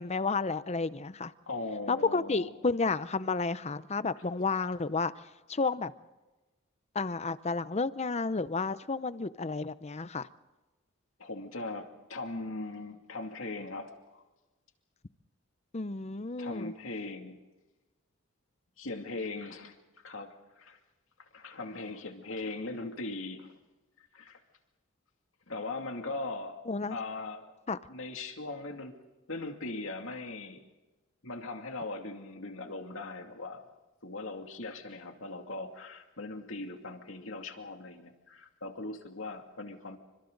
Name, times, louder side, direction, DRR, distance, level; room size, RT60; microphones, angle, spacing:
voice 1, 0.0-1.3 1.9-5.1 5.5-5.9 6.9-10.3 15.7-16.7 26.7-27.0 27.7-27.8, left 4 dB, 30° left, 0.7 m, -31 dB
voice 2, 1.5-2.5 4.2-4.3 11.2-14.2 16.4-17.4 18.8-19.7 20.0-20.8 21.3-23.5 24.0-24.4 25.5-26.6 26.9-27.5 27.9-28.9 29.3-30.6 31.2-33.6 34.0-40.0, left 2 dB, 70° left, 2.5 m, -39 dB
29.5 x 25.5 x 4.0 m
head